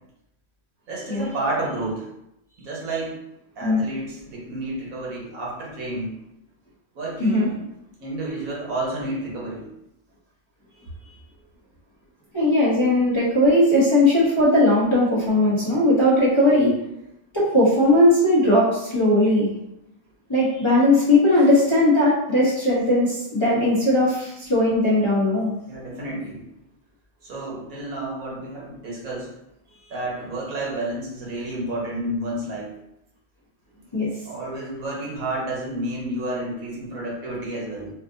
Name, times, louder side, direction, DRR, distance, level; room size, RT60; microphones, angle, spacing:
voice 1, 0.9-2.1 2.6-3.2 3.6-6.1 6.9-7.6 8.0-9.7 10.7-11.2 25.7-26.4 27.2-29.3 29.7-32.7 33.7-33.8 34.2-37.9, right 1 dB, 80° right, -4 dB, 1.5 m, -30 dB
voice 2, 12.3-16.7 17.3-19.5 20.3-25.5 33.9-34.1, left 1 dB, 25° left, -9 dB, 0.6 m, -18 dB
4.3 x 2.4 x 2.6 m, 0.84 s
omnidirectional pair, 1.5 m